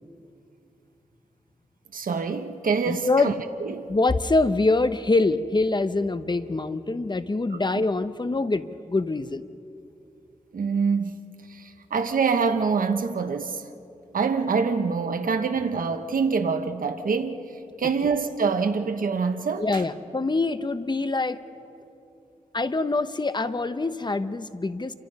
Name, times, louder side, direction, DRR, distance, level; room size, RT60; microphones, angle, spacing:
voice 1, 1.9-3.3 3.6-3.9 7.5-7.6 10.5-13.6 14.1-19.8, right 5 dB, 85° right, 7 dB, 1.0 m, -25 dB
voice 2, 2.9-3.4 3.9-9.4 19.6-21.4 22.5-24.9, left 3 dB, 30° left, 12 dB, 0.9 m, -24 dB
28.0 x 24.5 x 5.4 m, 2.7 s
wide cardioid pair, 80°, 14 cm